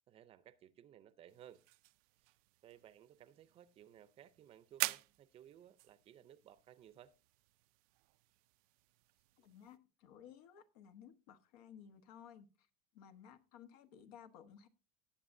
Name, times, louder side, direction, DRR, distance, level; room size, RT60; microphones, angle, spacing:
voice 1, 0.1-1.6 2.2-2.4 2.6-7.1, right 10 dB, 30° right, 0.6 m, -59 dB
sound 1, 1.3-9.8, right 22 dB, 80° right, 0.5 m, -48 dB
voice 2, 9.4-12.7 12.9-14.7, left 8 dB, 80° left, 1.2 m, -57 dB
18.5 x 6.9 x 2.6 m
cardioid pair, 155°, 19 cm